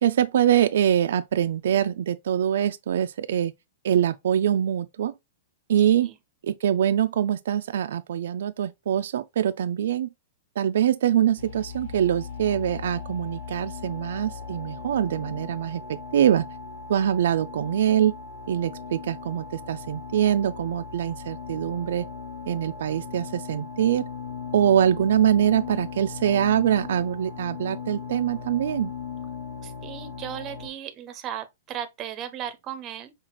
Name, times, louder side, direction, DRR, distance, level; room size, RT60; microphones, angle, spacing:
voice 1, 0.0-3.5 3.8-5.1 5.7-6.1 6.4-10.1 10.6-16.5 16.9-18.1 18.5-22.0 22.5-24.0 24.5-28.9, right 10 dB, 70° right, 0.3 m, -24 dB
sound 1, 11.4-30.7, left 5 dB, 55° left, 1.7 m, -38 dB
voice 2, 29.6-33.1, right 10 dB, 25° right, 0.6 m, -36 dB
5.7 x 2.4 x 2.9 m
supercardioid pair, 165°, 0 cm